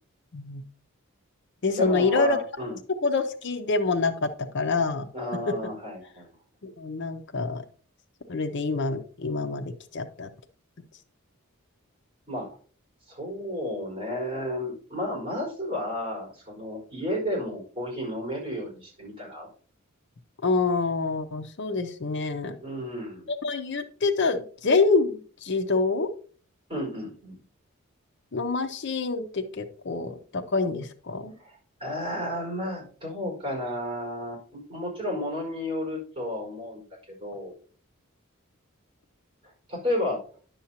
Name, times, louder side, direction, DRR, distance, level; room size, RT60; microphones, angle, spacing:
voice 1, 0.3-0.6 1.6-2.4 3.0-5.1 5.5-5.6 6.6-7.6 8.3-10.3 20.4-22.5 23.4-26.1 28.3-31.3, left 3 dB, 55° left, 8 dB, 0.6 m, -26 dB
voice 2, 1.7-2.8 5.1-6.3 12.3-12.5 13.1-19.5 22.6-23.3 26.7-27.4 31.4-36.8 37.2-37.6 39.4-40.2, left 1 dB, 25° right, -3 dB, 4.7 m, -32 dB
10.5 x 7.1 x 2.9 m, 0.43 s
head